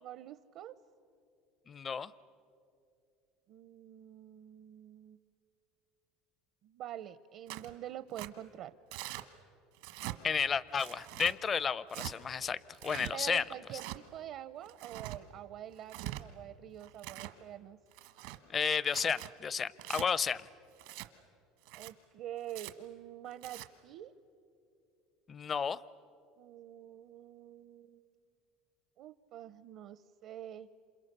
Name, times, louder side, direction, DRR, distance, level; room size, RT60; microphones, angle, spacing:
voice 1, 0.0-0.8 3.5-5.2 6.6-8.7 13.1-17.8 21.7-24.1 26.4-28.1 29.0-30.7, right 11 dB, 55° right, 14 dB, 0.6 m, -46 dB
voice 2, 1.7-2.1 10.2-13.4 18.5-20.5 25.3-25.8, left 6 dB, 25° left, 19 dB, 0.5 m, -32 dB
Tearing, 7.5-7.7 8.2-8.3 8.9-9.3 9.8-10.2 10.8-11.4 11.9-12.1 12.7-13.1 13.7-14.0 14.7-15.2 15.8-16.2 16.8-17.4 17.9-18.4 18.9-19.3 19.8-20.1 20.8-21.1 21.6-21.9 22.5-22.7 23.3-23.7, right 17 dB, 85° right, 1.2 m, -43 dB
28.5 x 27.5 x 6.7 m, 2.7 s
cardioid pair, 135°, 0 cm